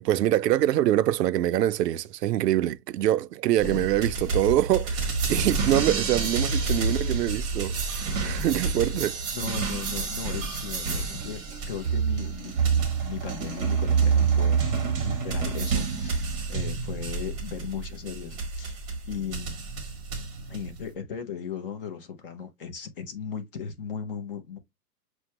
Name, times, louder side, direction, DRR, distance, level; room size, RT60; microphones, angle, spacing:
voice 1, 0.0-9.2, right 13 dB, 75° right, 0.6 m, -25 dB
voice 2, 3.6-3.9 4.2-4.3 8.6-8.8 9.3-11.4 11.7-14.6 15.0-18.8 19.1-19.6 20.5-24.6, left 7 dB, 35° left, 0.7 m, -37 dB
sound 1, 3.6-20.9, right 5 dB, 15° right, 0.8 m, -28 dB
6.1 x 2.2 x 2.8 m
hypercardioid pair, 160°, 49 cm